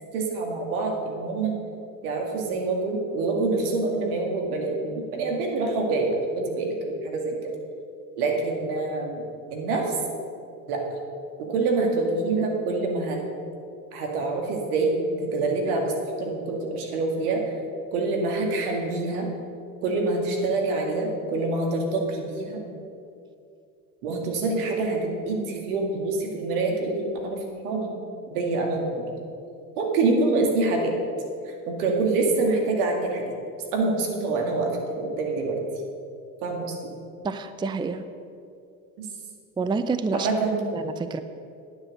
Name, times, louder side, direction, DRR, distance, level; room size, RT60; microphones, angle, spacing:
voice 1, 0.1-1.6 2.0-7.5 8.2-9.2 9.5-9.9 10.7-10.8 11.4-13.2 13.9-15.0 15.3-15.9 16.2-17.5 17.9-19.3 19.8-22.6 24.0-28.0 28.3-29.0 29.8-31.0 31.5-33.2 33.7-35.6 36.4-36.9 39.0-39.1 40.1-40.8, right 3 dB, 75° right, 1 dB, 2.3 m, -26 dB
voice 2, 37.2-38.1 39.6-40.3 40.7-41.2, right 4 dB, 10° right, 11 dB, 0.5 m, -28 dB
9.8 x 9.2 x 6.5 m, 2.5 s
hypercardioid pair, 75°, 45 cm